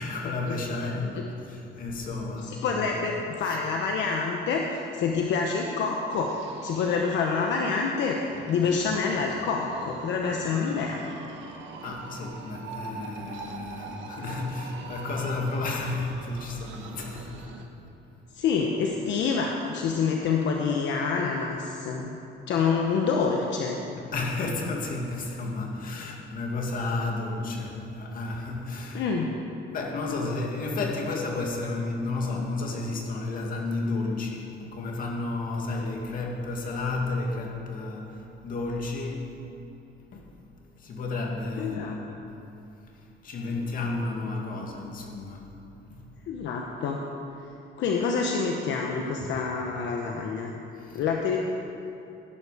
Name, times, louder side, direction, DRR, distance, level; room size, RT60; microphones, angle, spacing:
voice 1, 0.0-2.9 3.5-3.6 11.8-17.5 17.7-17.9 24.0-29.1 29.7-39.3 40.1-40.3 40.8-42.3 42.9-45.5 45.9-46.1 50.8-51.0, left 3 dB, 45° left, 0 dB, 2.1 m, -32 dB
voice 2, 2.6-8.2 8.5-11.0 18.3-22.2 22.5-23.8 28.9-29.3 41.6-42.0 46.3-47.0 47.8-50.5 50.9-51.4, left 5 dB, 65° left, 1 dB, 1.1 m, -27 dB
sound 1, 6.1-17.6, right 4 dB, 70° right, 1.4 m, -43 dB
16.5 x 11.5 x 5.0 m, 2.8 s
cardioid pair, 165°, 20 cm